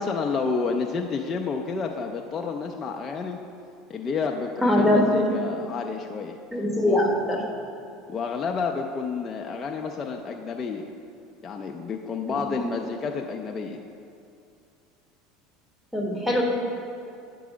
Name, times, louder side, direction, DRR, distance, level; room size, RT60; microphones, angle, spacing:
voice 1, 0.0-3.4 3.9-6.4 6.8-7.0 8.1-10.9 11.4-13.8, left 5 dB, 30° left, 1 dB, 0.5 m, -30 dB
voice 2, 4.6-5.3 6.5-7.4 12.3-12.7 15.9-16.4, left 1 dB, ahead, -2 dB, 1.3 m, -22 dB
9.4 x 4.6 x 5.1 m, 2.5 s
supercardioid pair, 110°, 0 cm